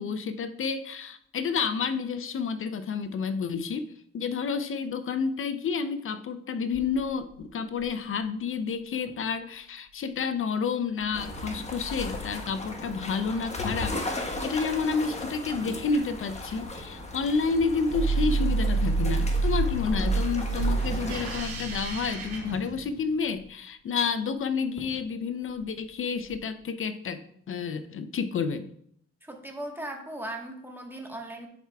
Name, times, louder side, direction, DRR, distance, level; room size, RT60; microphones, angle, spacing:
voice 1, 0.0-3.9 4.1-28.7, left 5 dB, 45° left, 11 dB, 0.5 m, -30 dB
sound 1, 6.7-8.2 8.7-8.8 9.1-9.3 9.9-10.2 11.0-12.5 13.1-17.0 17.5-20.5 21.0-21.3 21.6-21.7 21.9-22.7 24.3-24.4 24.8-25.1 25.4-26.4, left 3 dB, 70° left, 1.5 m, -42 dB
sound 2, 11.1-21.4, left 1 dB, 20° left, 1.2 m, -37 dB
sound 3, 17.9-23.2, right 3 dB, 90° right, 2.4 m, -28 dB
voice 2, 29.2-31.5, right 1 dB, 5° right, 2 dB, 1.3 m, -38 dB
10.5 x 4.6 x 2.3 m, 0.69 s
cardioid pair, 90°, 30 cm